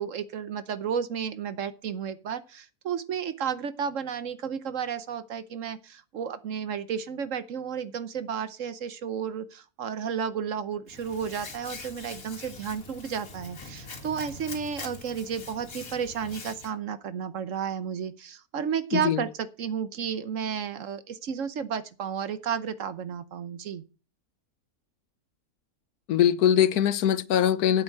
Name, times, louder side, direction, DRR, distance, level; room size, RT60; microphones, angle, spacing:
voice 1, 0.0-23.8, right 7 dB, 60° right, 1.1 m, -32 dB
Hands, 10.9-16.7, left 3 dB, 60° left, 2.3 m, -43 dB
voice 2, 18.9-19.2 26.1-27.8, left 10 dB, 80° left, 1.2 m, -22 dB
8.6 x 8.0 x 7.5 m
omnidirectional pair, 1.6 m